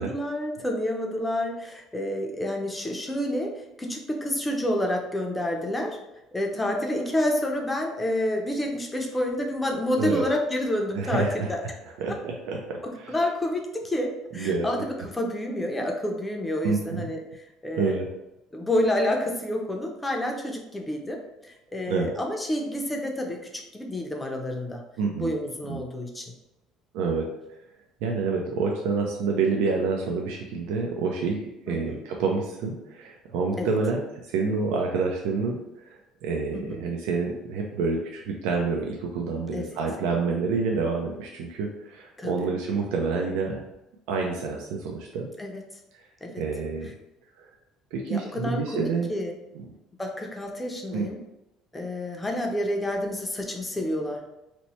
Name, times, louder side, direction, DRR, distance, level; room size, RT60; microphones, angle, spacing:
voice 1, 0.0-6.0 6.3-11.6 13.1-18.0 18.5-24.8 25.2-26.3 31.7-32.0 33.6-33.7 36.5-36.8 39.5-39.7 42.2-42.5 45.4-45.6 46.2-46.4 46.8-46.9 48.1-49.3 50.0-51.2 51.7-54.2, left 1 dB, 10° left, 1 dB, 0.5 m, -29 dB
voice 2, 10.9-11.5 12.0-13.1 14.3-14.7 15.0-15.1 16.6-17.1 17.8-18.1 21.9-22.1 25.0-25.3 25.7-25.8 26.9-27.3 28.0-43.6 44.1-45.3 46.4-46.9 47.4-47.5 47.9-49.1 50.9-51.1, right 4 dB, 85° right, 0 dB, 0.4 m, -28 dB
2.9 x 2.1 x 4.1 m, 0.90 s
cardioid pair, 135°, 0 cm